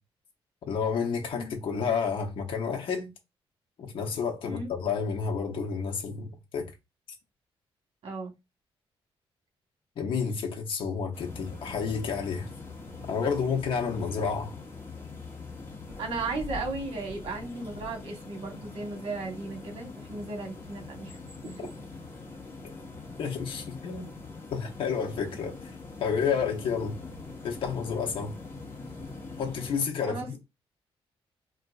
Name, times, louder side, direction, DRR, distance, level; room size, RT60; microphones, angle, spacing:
voice 1, 0.7-3.1 3.8-6.7 10.0-12.5 13.1-14.6 23.2-24.1 24.5-25.5 26.0-27.0 27.4-28.3 29.4-30.4, left 6 dB, 60° left, 0.7 m, -30 dB
sound 1, 11.1-29.8, left 3 dB, 25° left, 1.0 m, -43 dB
voice 2, 16.0-21.2 21.4-21.5 30.1-30.3, right 3 dB, 70° right, 1.1 m, -35 dB
3.8 x 2.4 x 2.3 m
cardioid pair, 140°, 10 cm